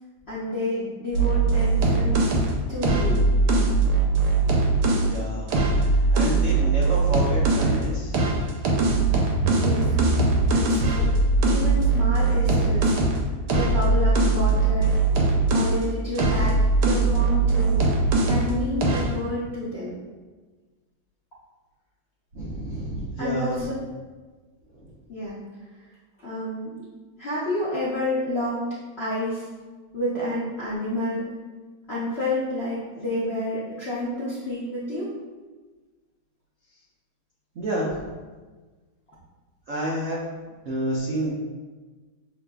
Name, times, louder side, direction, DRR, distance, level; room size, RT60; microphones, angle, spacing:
voice 1, 0.3-2.3 2.7-3.3 9.5-10.0 10.5-13.0 13.5-15.0 15.5-17.9 18.2-20.0 23.2-23.7 25.1-25.4 26.2-26.9 27.2-28.6 29.0-29.5 29.9-31.3 31.9-35.1, left 1 dB, 65° left, -9 dB, 0.6 m, -29 dB
sound 1, 1.1-5.1 5.5-7.9 8.1-15.8 16.1-18.5 18.8-19.1, right 3 dB, 70° right, 1.1 m, -21 dB
voice 2, 5.0-5.5 5.9-8.2 22.3-23.5 24.8-24.9 37.6-38.0 39.7-40.2 40.6-41.3, right 1 dB, 85° right, -5 dB, 0.7 m, -29 dB
6.2 x 2.5 x 2.3 m, 1.3 s
omnidirectional pair, 2.2 m